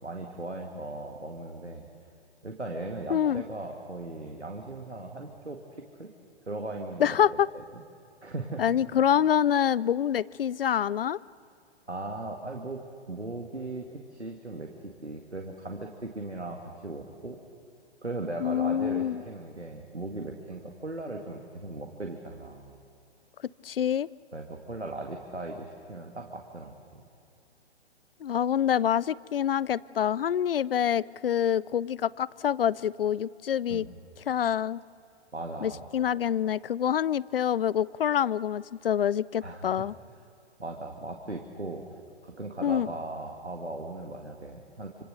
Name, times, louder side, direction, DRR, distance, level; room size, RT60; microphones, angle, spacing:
voice 1, 0.0-1.9 2.4-6.1 6.5-7.2 7.5-7.8 8.2-8.6 11.9-17.4 18.0-22.8 24.3-27.0 33.7-33.9 35.3-35.8 39.4-39.9 40.6-41.8 42.2-45.0, right 2 dB, 90° right, 2 dB, 2.2 m, -38 dB
voice 2, 3.1-3.4 7.0-7.5 8.6-11.2 18.4-19.2 23.6-24.1 28.2-33.9 34.3-34.8 35.6-39.9 42.6-42.9, left 9 dB, 60° left, 23 dB, 0.5 m, -26 dB
27.0 x 26.5 x 6.7 m, 2.4 s
figure-of-eight pair, 125°, 33 cm